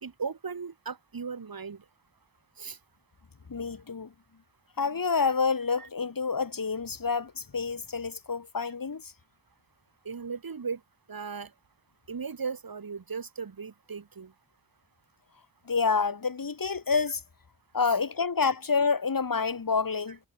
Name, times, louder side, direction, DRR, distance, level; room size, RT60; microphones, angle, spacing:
voice 1, 0.0-1.8 2.6-2.8 5.8-5.9 10.1-10.8 11.1-11.5 12.1-14.3 17.8-18.0, right 5 dB, 65° right, 1.7 m, -37 dB
voice 2, 3.5-4.1 4.8-9.1 15.7-17.2 17.7-20.2, left 5 dB, 60° left, 2.0 m, -28 dB
cardioid pair, 40°, 37 cm